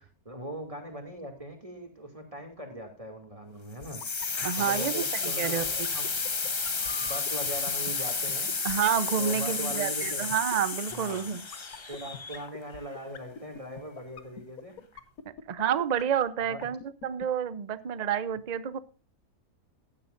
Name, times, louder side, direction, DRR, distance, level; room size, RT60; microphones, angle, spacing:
voice 1, 0.0-4.0 4.6-6.1 7.0-8.5 9.2-10.3 10.9-11.3 11.9-14.9 16.4-16.7, right 1 dB, 20° right, 3 dB, 2.6 m, -40 dB
sound 1, 3.8-17.2, left 8 dB, 75° left, 1.5 m, -42 dB
sound 2, 3.8-12.7, left 4 dB, 30° left, 0.5 m, -32 dB
voice 2, 4.4-5.6 8.6-11.5 15.2-18.8, right 8 dB, 40° right, 15 dB, 0.6 m, -29 dB
16.5 x 10.5 x 2.6 m, 0.32 s
omnidirectional pair, 1.6 m